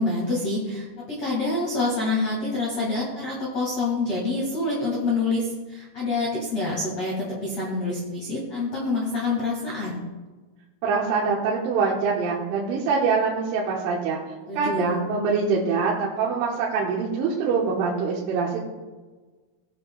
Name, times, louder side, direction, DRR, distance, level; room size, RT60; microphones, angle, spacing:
voice 1, 0.0-10.0 14.5-15.0, left 2 dB, 50° left, -5 dB, 2.2 m, -27 dB
voice 2, 10.8-14.2 14.6-18.6, right 5 dB, 75° right, -4 dB, 3.5 m, -24 dB
19.5 x 7.4 x 2.3 m, 1.3 s
omnidirectional pair, 5.8 m